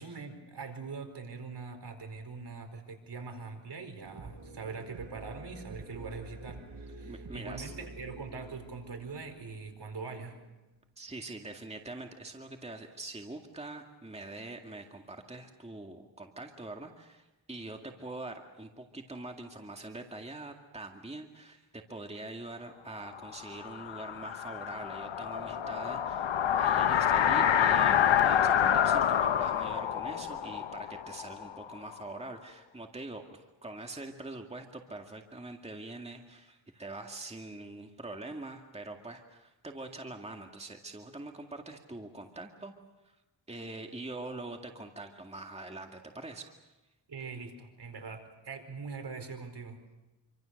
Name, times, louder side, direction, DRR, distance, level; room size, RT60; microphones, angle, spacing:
voice 1, 0.0-6.6 6.9-10.4 47.1-49.8, right 4 dB, 60° right, 6 dB, 4.5 m, -42 dB
sound 1, 4.0-11.0, right 2 dB, 80° right, 6.8 m, -48 dB
voice 2, 7.1-7.7 11.0-26.3 26.6-42.7 43.0-43.2 43.5-46.6, right 2 dB, 15° right, 3 dB, 2.1 m, -44 dB
sound 2, 23.2-32.0, left 9 dB, 80° left, 1.1 m, -27 dB
27.0 x 25.5 x 6.6 m, 1.1 s
wide cardioid pair, 85°, 45 cm